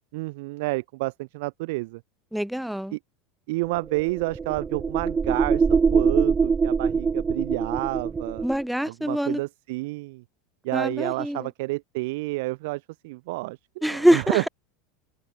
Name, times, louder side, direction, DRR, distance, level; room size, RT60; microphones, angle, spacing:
voice 1, 0.1-2.0 2.9-3.0 3.5-8.4 8.9-10.2 10.6-14.5, right 23 dB, 70° right, 1.6 m, -30 dB
voice 2, 2.3-3.0 8.4-9.4 10.7-11.5 13.8-14.5, equal, ahead, 0.6 m, -24 dB
sound 1, 3.7-8.6, right 5 dB, 20° right, 2.5 m, -23 dB
open air
supercardioid pair, 125°, 0 cm